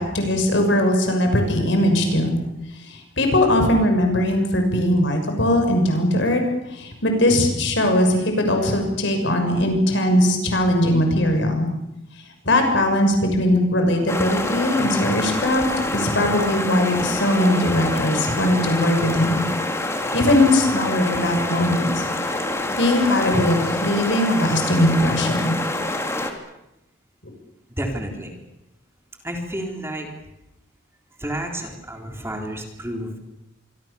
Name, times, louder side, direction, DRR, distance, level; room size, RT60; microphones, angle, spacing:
voice 1, 0.0-2.3 2.9-6.4 6.7-11.7 12.5-15.6 15.9-19.4 20.1-21.9 22.7-25.5, left 1 dB, 65° left, 5 dB, 6.4 m, -20 dB
sound 1, 14.1-26.3, left 1 dB, 15° left, 2.6 m, -26 dB
voice 2, 27.7-28.4 29.2-30.1 31.2-33.2, right 1 dB, 15° right, 2 dB, 3.7 m, -30 dB
26.0 x 23.5 x 7.0 m, 0.88 s
head